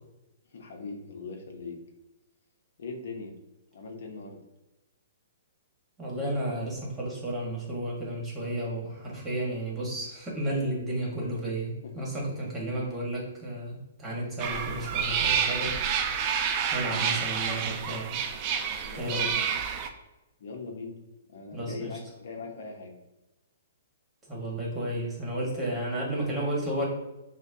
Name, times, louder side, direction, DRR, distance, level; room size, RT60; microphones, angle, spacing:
voice 1, 0.5-1.8 2.8-3.3 3.7-4.4 11.8-12.1 12.8-12.9 18.8-19.7 20.4-21.0 21.3-22.9 25.5-25.6, left 4 dB, 70° left, 3 dB, 0.7 m, -40 dB
voice 2, 6.0-15.8 16.7-18.1 18.9-19.3 21.5-21.9 24.3-26.9, right 1 dB, 10° right, -4 dB, 1.3 m, -32 dB
sound 1, 14.4-19.9, right 7 dB, 30° right, 0.4 m, -29 dB
6.2 x 2.2 x 2.7 m, 1.0 s
hypercardioid pair, 150°, 0 cm